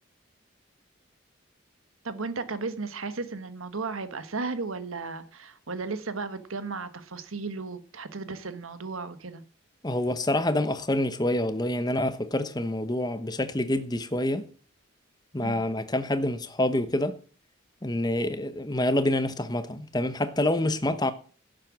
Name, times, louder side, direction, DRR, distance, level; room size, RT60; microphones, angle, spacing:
voice 1, 2.0-9.4 15.4-15.7, right 4 dB, 85° right, 1.4 m, -35 dB
voice 2, 9.8-14.5 15.3-17.2 17.8-21.1, left 1 dB, 20° left, 0.9 m, -27 dB
11.0 x 7.7 x 7.3 m
head